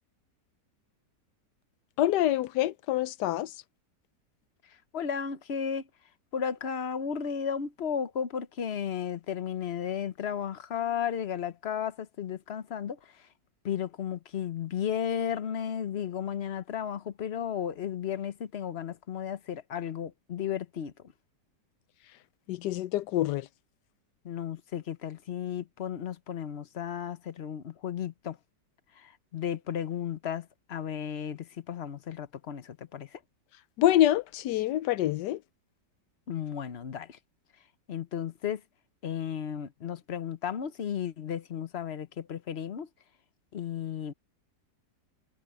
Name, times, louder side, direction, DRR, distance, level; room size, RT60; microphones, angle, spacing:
voice 1, 2.0-3.5 22.5-23.5 33.8-35.4, left 13 dB, 75° left, 1.2 m, -26 dB
voice 2, 4.6-5.9 6.3-13.3 13.6-20.9 24.2-28.4 28.9-33.2 36.3-37.2 37.9-38.6 39.0-42.9 43.5-44.1, left 8 dB, 45° left, 1.0 m, -34 dB
omnidirectional pair, 1.9 m